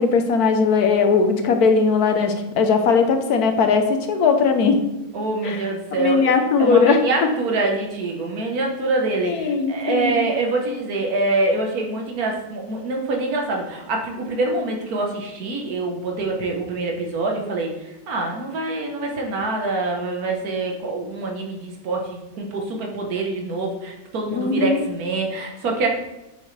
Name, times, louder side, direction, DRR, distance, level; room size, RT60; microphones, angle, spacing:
voice 1, 0.0-4.8 5.4-5.7 6.0-7.0 9.2-10.2 24.3-24.8, left 5 dB, 90° left, 6 dB, 1.4 m, -19 dB
voice 2, 5.1-25.9, right 2 dB, 80° right, 1 dB, 1.7 m, -25 dB
9.4 x 6.2 x 3.3 m, 1.0 s
omnidirectional pair, 1.6 m